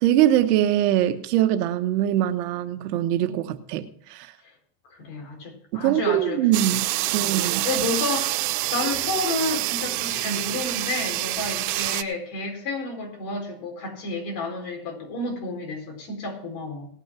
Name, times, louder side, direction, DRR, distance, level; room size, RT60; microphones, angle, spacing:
voice 1, 0.0-4.3 5.7-6.9 7.1-7.7, right 12 dB, 75° right, 8 dB, 1.2 m, -22 dB
voice 2, 4.9-6.4 7.0-8.4 8.7-16.9, left 3 dB, 55° left, 2 dB, 4.3 m, -31 dB
sound 1, 6.5-12.0, right 20 dB, 50° right, 0.6 m, -26 dB
18.5 x 6.2 x 6.1 m, 0.64 s
supercardioid pair, 150°, 46 cm